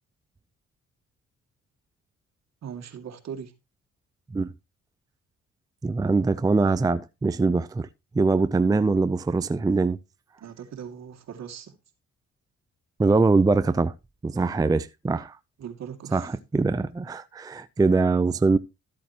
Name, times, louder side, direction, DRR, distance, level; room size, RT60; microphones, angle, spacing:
voice 1, 2.6-3.5 10.4-11.7 15.6-16.3, right 8 dB, 60° right, 2.4 m, -39 dB
voice 2, 5.8-7.9 8.1-10.0 13.0-13.9 14.2-15.4 16.1-18.6, right 3 dB, 15° right, 0.5 m, -23 dB
13.5 x 8.5 x 2.9 m
cardioid pair, 90°, 30 cm